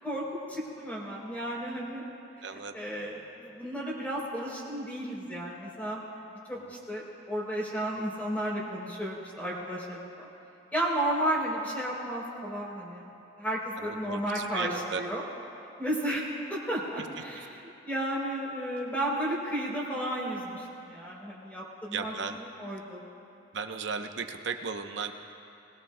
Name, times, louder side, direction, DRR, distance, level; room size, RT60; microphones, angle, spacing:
voice 1, 0.0-2.0 2.5-6.0 6.3-10.3 10.7-13.1 13.4-15.2 15.8-23.0, right 1 dB, 10° left, -4 dB, 3.2 m, -33 dB
voice 2, 2.4-2.7 13.8-15.0 21.9-22.4 23.5-25.1, right 5 dB, 70° right, 6 dB, 0.8 m, -35 dB
21.0 x 20.5 x 2.2 m, 2.7 s
head